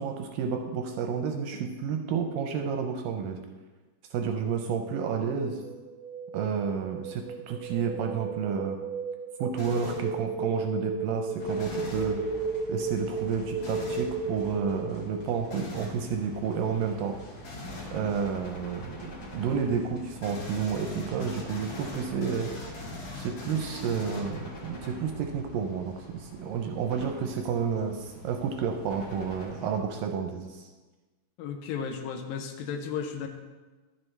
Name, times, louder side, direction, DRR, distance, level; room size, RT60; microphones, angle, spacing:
voice 1, 0.0-3.4 4.1-5.6 6.3-8.8 9.4-12.2 12.7-17.2 17.9-22.5 23.1-30.7, right 6 dB, 80° right, 4 dB, 2.2 m, -30 dB
sound 1, 5.5-15.1, right 4 dB, 10° right, 0.7 m, -34 dB
sound 2, 9.6-10.1 11.6-12.1 13.6-14.1 15.5-16.0 17.4-17.9 20.2-24.6, left 3 dB, 65° left, 2.6 m, -41 dB
sound 3, 11.4-29.8, equal, 35° left, 1.6 m, -45 dB
voice 2, 31.4-33.3, left 6 dB, 80° left, 5 dB, 2.3 m, -34 dB
12.5 x 7.6 x 3.2 m, 1.3 s
omnidirectional pair, 4.4 m